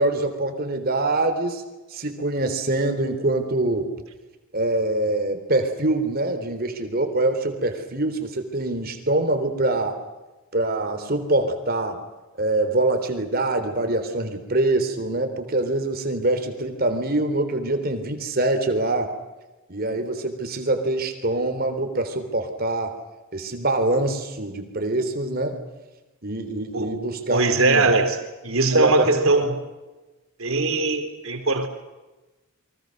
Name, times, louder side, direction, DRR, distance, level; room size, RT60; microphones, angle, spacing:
voice 1, 0.0-1.6 1.9-3.9 4.5-10.0 10.5-12.0 12.4-19.1 19.7-23.0 23.3-25.6 26.2-27.9 28.7-29.3, right 2 dB, 45° right, 7 dB, 3.6 m, -24 dB
voice 2, 27.3-29.6 30.4-31.7, right 3 dB, 75° right, 7 dB, 3.6 m, -21 dB
29.5 x 24.5 x 6.6 m, 1.1 s
head